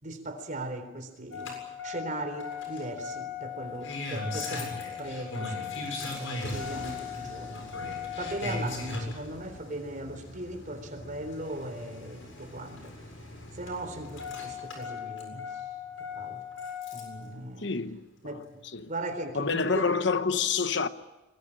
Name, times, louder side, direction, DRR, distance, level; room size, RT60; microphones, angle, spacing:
voice 1, 0.0-7.7 8.2-12.9 13.5-15.6 16.1-16.4 16.9-17.7 18.2-18.4 18.9-19.9, right 1 dB, 40° right, 3.8 m, -38 dB
Engine starting, 1.3-17.2 18.5-18.6, left 4 dB, 80° left, 7.4 m, -38 dB
voice 2, 17.6-18.0 18.3-18.4 18.7-18.9 19.3-20.9, left 5 dB, 60° left, 1.0 m, -27 dB
23.0 x 21.5 x 8.8 m
head